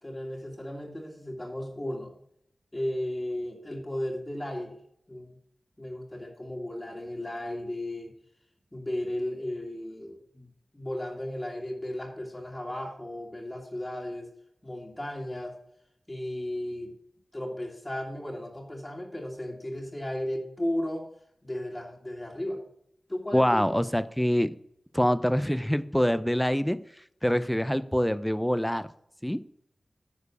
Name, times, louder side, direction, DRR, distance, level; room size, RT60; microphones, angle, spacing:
voice 1, 0.0-2.1 2.7-4.8 5.1-5.4 5.8-8.1 8.7-14.3 14.6-15.5 16.1-16.9 17.3-21.1 21.4-22.6 23.1-23.7, left 1 dB, 25° left, -1 dB, 2.0 m, -35 dB
voice 2, 23.3-24.5 24.9-26.8 27.2-28.9 29.2-29.4, equal, 5° left, 14 dB, 0.6 m, -25 dB
9.6 x 4.7 x 6.9 m, 0.73 s
cardioid pair, 40°, 0 cm